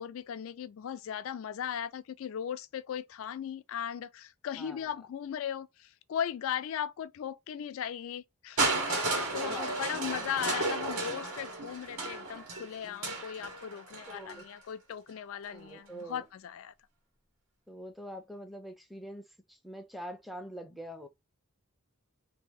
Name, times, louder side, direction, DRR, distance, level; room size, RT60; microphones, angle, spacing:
voice 1, 0.0-16.7, left 9 dB, 65° left, 0.3 m, -38 dB
voice 2, 4.6-4.9 9.4-9.7 14.1-14.5 15.5-16.3 17.7-21.1, equal, ahead, 0.5 m, -44 dB
Crushing, 8.6-14.5 15.4-15.5, right 3 dB, 80° right, 1.5 m, -33 dB
2.8 x 2.7 x 3.5 m
head